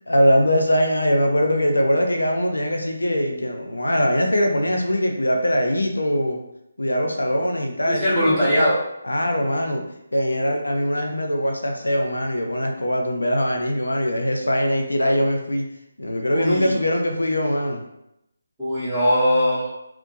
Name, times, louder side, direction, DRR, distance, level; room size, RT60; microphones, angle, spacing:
voice 1, 0.1-6.4 6.8-8.7 9.0-9.8 10.1-15.6 16.0-17.8, equal, 75° left, 3 dB, 0.5 m, -22 dB
voice 2, 7.9-8.8 16.3-16.8 18.6-19.7, equal, 5° right, -14 dB, 1.1 m, -20 dB
2.8 x 2.1 x 2.6 m, 0.83 s
figure-of-eight pair, 150°, 0 cm